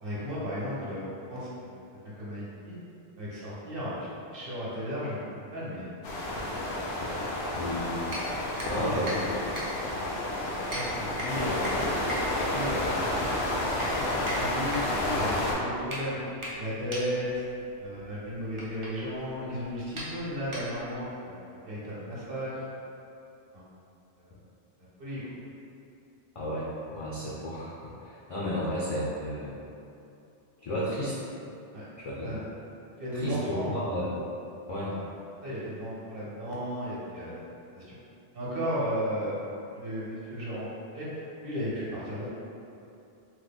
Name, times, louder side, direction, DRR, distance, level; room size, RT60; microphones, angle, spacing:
voice 1, 0.0-2.7 3.2-4.0 4.3-6.2 8.8-9.1 10.7-11.7 12.0-13.4 13.8-16.2 16.6-17.4 17.8-22.6 23.5-23.7 25.0-25.3 30.8-30.9 31.7-31.8 32.2-32.4 33.0-33.7 34.9-35.0 35.4-37.3 37.7-38.0 38.3-40.7 40.9-42.3, equal, 60° right, -8 dB, 0.9 m, -35 dB
sound 1, 6.0-15.5, left 1 dB, 85° left, 0.8 m, -30 dB
voice 2, 7.5-7.9 8.7-9.5 11.0-11.1 26.4-29.6 30.6-31.2 32.0-32.4 33.1-34.1 34.7-35.0, equal, 50° left, -7 dB, 0.4 m, -33 dB
sound 2, 8.1-21.1, equal, 40° right, 0.5 m, -40 dB
3.0 x 2.1 x 3.4 m, 2.7 s
omnidirectional pair, 1.1 m